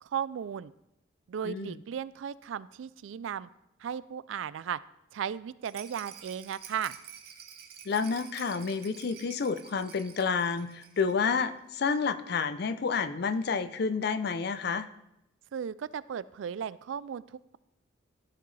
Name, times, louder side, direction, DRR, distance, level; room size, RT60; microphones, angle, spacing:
voice 1, 0.0-0.7 1.3-3.5 3.8-4.8 5.1-7.0 15.5-17.6, right 8 dB, 70° right, 18 dB, 0.3 m, -36 dB
voice 2, 1.4-1.8 7.9-14.9, left 5 dB, 55° left, 12 dB, 0.5 m, -30 dB
Rattle, 5.6-11.3 11.6-11.7 11.9-12.0, right 8 dB, 50° right, 0.8 m, -49 dB
13.5 x 5.8 x 3.2 m, 0.84 s
head